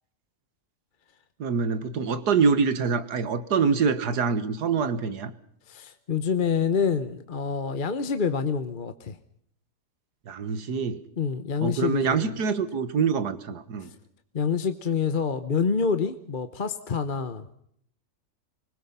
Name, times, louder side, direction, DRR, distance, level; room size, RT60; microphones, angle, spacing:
voice 1, 1.4-5.3 10.3-11.0 11.6-13.9, right 5 dB, 85° right, 13 dB, 1.9 m, -25 dB
voice 2, 5.7-9.2 11.2-12.3 14.3-17.5, left 6 dB, 35° left, 10 dB, 1.0 m, -27 dB
24.5 x 20.5 x 5.6 m, 0.70 s
omnidirectional pair, 1.7 m